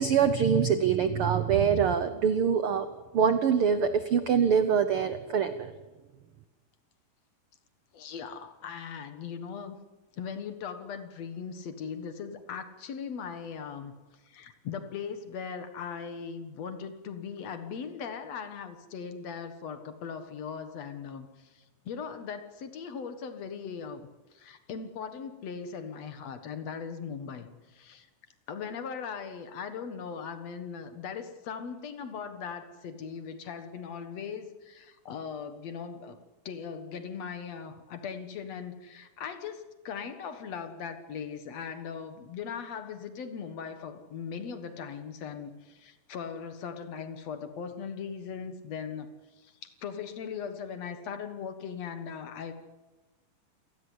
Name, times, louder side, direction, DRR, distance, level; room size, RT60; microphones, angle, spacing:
voice 1, 0.0-2.9 3.1-5.7, right 7 dB, 75° right, 10 dB, 1.3 m, -24 dB
voice 2, 7.9-9.8 10.2-13.9 14.3-21.3 21.5-24.1 24.3-28.1 28.5-36.2 36.5-49.1 49.4-52.5, left 6 dB, 55° left, 9 dB, 2.4 m, -39 dB
28.0 x 18.5 x 8.0 m, 1.2 s
omnidirectional pair, 3.9 m